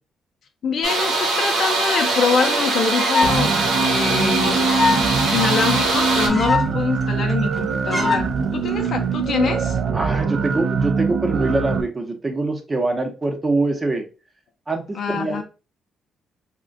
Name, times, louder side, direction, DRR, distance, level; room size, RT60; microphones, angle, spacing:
voice 1, 0.6-4.7 5.3-9.8 14.9-15.4, left 5 dB, 60° left, 0.5 m, -24 dB
sound 1, 0.8-6.3, right 3 dB, 85° right, 0.9 m, -22 dB
sound 2, 2.1-2.2 2.4-2.5 2.7-3.4 3.7-3.8 4.0-4.1 4.6-5.0 5.4-5.5 5.7-5.8 6.0-6.7 7.0-7.1 7.3-7.6 7.9-8.2 8.8-9.1, left 4 dB, 20° left, 0.7 m, -22 dB
sound 3, 3.2-11.8, right 5 dB, 60° right, 0.3 m, -23 dB
voice 2, 9.9-14.0 14.7-15.4, right 2 dB, 25° right, 0.7 m, -24 dB
2.4 x 2.1 x 3.6 m
cardioid pair, 90°, 0 cm